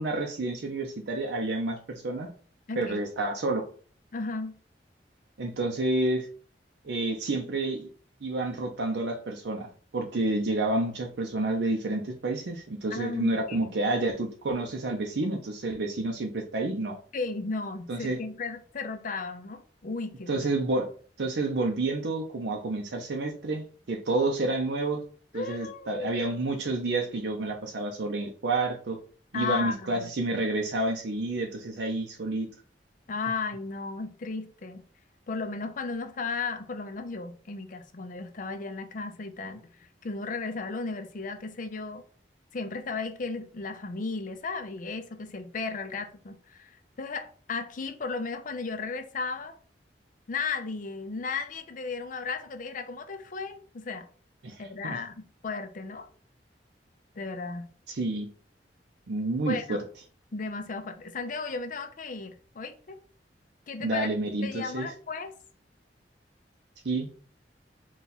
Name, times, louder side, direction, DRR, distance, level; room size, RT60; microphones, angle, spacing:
voice 1, 0.0-2.3 2.8-3.6 5.4-6.3 6.8-7.9 8.2-17.0 17.9-18.2 20.3-20.9 21.2-25.0 25.3-29.0 29.3-32.5 54.4-55.0 57.9-58.3 59.1-59.8 63.8-64.9 66.8-67.1, right 2 dB, 75° right, 0.6 m, -29 dB
voice 2, 2.7-3.0 4.1-4.5 12.9-13.7 17.1-20.4 25.3-26.1 29.3-30.1 33.1-34.8 35.3-42.0 42.5-49.5 50.3-54.1 54.6-56.1 57.1-57.7 59.5-59.8 60.3-63.0 63.7-64.1 64.4-65.3, left 4 dB, 50° left, 0.5 m, -35 dB
4.1 x 2.3 x 4.0 m
head